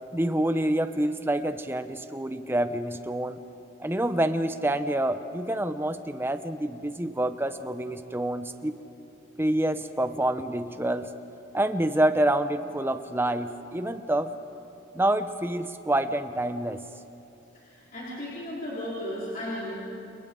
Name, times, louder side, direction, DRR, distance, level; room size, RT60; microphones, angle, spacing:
voice 1, 0.1-3.4 3.8-8.7 9.4-11.1 11.5-14.3 14.9-16.8, right 1 dB, 10° right, 9 dB, 0.7 m, -27 dB
voice 2, 17.5-19.7, left 1 dB, 40° left, -8 dB, 4.1 m, -35 dB
29.5 x 29.0 x 3.8 m, 2.9 s
head